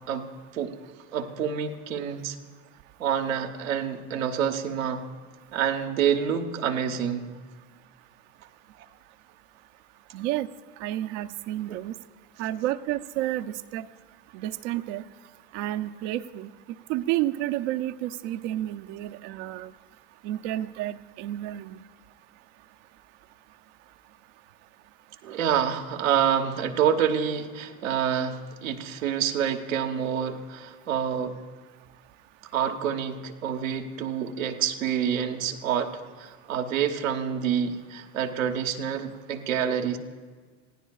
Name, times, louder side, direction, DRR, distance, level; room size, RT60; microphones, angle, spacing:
voice 1, 1.1-2.4 3.0-5.0 5.5-7.3 11.7-11.8 25.2-31.4 32.5-40.0, right 8 dB, 90° right, 3 dB, 1.2 m, -27 dB
voice 2, 10.1-10.5 10.8-11.9 12.4-13.9 14.3-15.0 15.5-16.5 16.9-19.7 20.2-21.8, right 14 dB, 65° right, 9 dB, 0.7 m, -30 dB
28.0 x 16.0 x 2.4 m, 1.5 s
hypercardioid pair, 85°, 39 cm